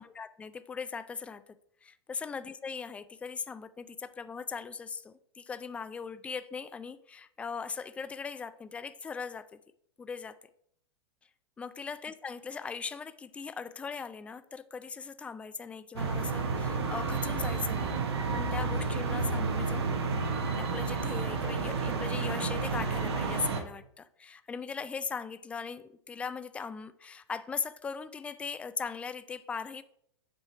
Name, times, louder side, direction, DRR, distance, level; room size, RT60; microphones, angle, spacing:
voice 1, 0.0-1.4 1.8-9.5 10.0-10.3 11.6-17.9 18.3-19.9 20.6-29.8, left 5 dB, 10° left, 12 dB, 0.3 m, -39 dB
sound 1, 16.0-23.6, right 4 dB, 70° right, 1.1 m, -31 dB
7.6 x 3.1 x 5.6 m, 0.71 s
hypercardioid pair, 105°, 14 cm